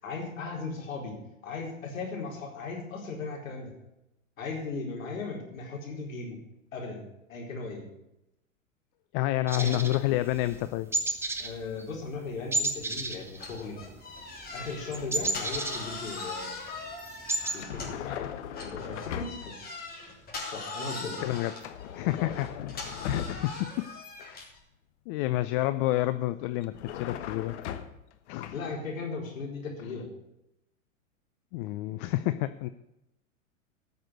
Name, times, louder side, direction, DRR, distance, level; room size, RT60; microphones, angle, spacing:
voice 1, 0.0-1.2 1.4-3.7 4.4-6.4 6.7-7.0 7.3-7.9 9.5-9.8 11.4-13.9 14.5-16.6 17.5-18.3 18.6-19.6 20.5-21.2 22.2-22.4 28.5-30.1, left 4 dB, 75° left, 0 dB, 4.3 m, -37 dB
voice 2, 9.1-10.9 21.2-21.5 21.9-22.5 23.0-23.7 24.2-24.5 25.1-27.6 28.3-28.6 31.5-32.7, left 15 dB, 40° left, 13 dB, 0.6 m, -29 dB
sound 1, 9.5-10.6 10.9-11.5 11.8-12.0 12.5-14.0 14.3-16.4 16.8-16.9 17.1-17.6, right 2 dB, 5° right, 1.0 m, -31 dB
sound 2, 13.4-18.1 18.5-24.6, left 3 dB, 20° left, 3.4 m, -41 dB
sound 3, 17.6-19.6 21.6-23.7 26.6-28.1 28.4-28.6, left 9 dB, 60° left, 1.3 m, -38 dB
13.5 x 6.6 x 7.8 m, 0.88 s
hypercardioid pair, 110°, 40 cm